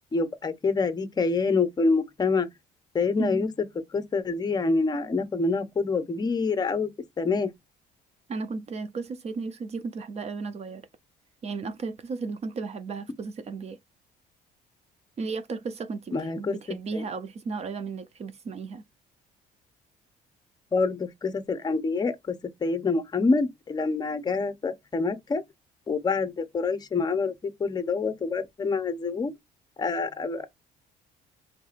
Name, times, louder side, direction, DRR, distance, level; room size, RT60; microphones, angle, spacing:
voice 1, 0.1-2.5 2.9-3.5 3.9-6.9 7.2-7.5 16.1-16.5 16.9-17.0 20.7-22.3 22.6-25.4 25.9-29.3 29.8-30.5, left 4 dB, 25° left, 0.7 m, -26 dB
voice 2, 3.2-3.5 8.3-10.8 11.4-13.8 15.2-18.8, right 4 dB, 40° right, 0.6 m, -34 dB
4.7 x 3.2 x 2.5 m
cardioid pair, 110°, 17 cm